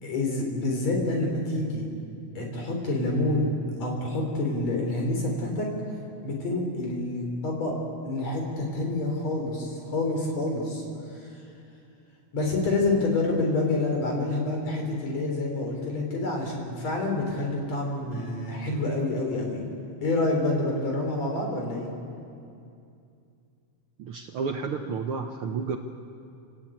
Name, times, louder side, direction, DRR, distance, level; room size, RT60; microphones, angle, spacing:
voice 1, 0.0-1.9 2.4-3.5 3.8-5.7 6.2-7.7 8.0-10.8 11.1-11.4 12.3-19.6 20.0-21.9, left 2 dB, 65° left, 1 dB, 5.3 m, -27 dB
voice 2, 24.0-25.8, right 5 dB, 60° right, 5 dB, 1.5 m, -31 dB
28.0 x 18.5 x 8.7 m, 2.5 s
omnidirectional pair, 3.3 m